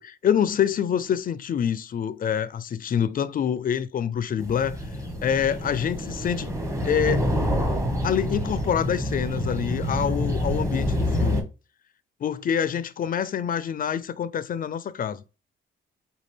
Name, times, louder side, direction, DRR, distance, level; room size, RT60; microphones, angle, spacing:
voice 1, 0.0-4.8 5.2-6.5 6.8-7.2 8.0-11.5 12.2-15.2, left 8 dB, 45° left, 0.5 m, -26 dB
sound 1, 4.4-11.4, left 1 dB, 15° right, 1.2 m, -27 dB
5.1 x 2.4 x 3.2 m
cardioid pair, 90°, 20 cm